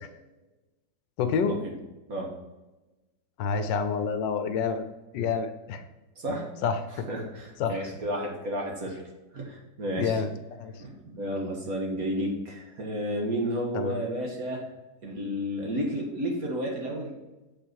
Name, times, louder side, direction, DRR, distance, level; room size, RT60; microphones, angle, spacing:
voice 1, 1.2-1.6 3.4-4.9 5.1-5.8 6.6-7.1 7.6-7.8 10.0-10.7 13.7-14.0, left 6 dB, 75° left, 9 dB, 1.4 m, -28 dB
voice 2, 6.2-6.5 7.1-9.0 9.3-10.2 10.8-14.7 15.0-17.1, equal, 50° right, 0 dB, 1.9 m, -32 dB
7.1 x 5.5 x 4.6 m, 1.1 s
omnidirectional pair, 2.0 m